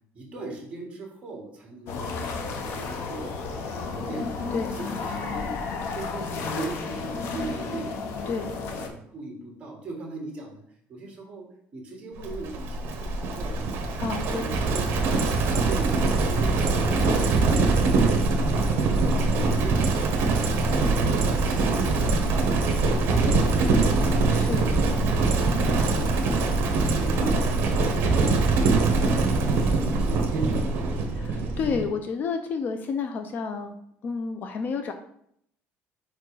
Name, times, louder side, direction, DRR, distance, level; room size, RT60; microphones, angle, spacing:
voice 1, 0.1-4.4 4.7-5.5 5.9-10.6 10.9-13.9 14.2-15.1 15.7-20.7 21.2-22.4 22.7-24.1 28.9-31.0, right 3 dB, 25° right, 0 dB, 1.9 m, -39 dB
sound 1, 1.9-8.9, left 4 dB, 60° left, 0.9 m, -32 dB
Livestock farm animals working animals, 12.2-31.9, right 3 dB, 50° right, 1.1 m, -23 dB
voice 2, 14.0-14.5 24.3-24.7 31.1-33.8 34.0-34.9, left 5 dB, 40° left, 6 dB, 0.5 m, -30 dB
4.9 x 4.4 x 4.9 m, 0.71 s
cardioid pair, 160°, 5 cm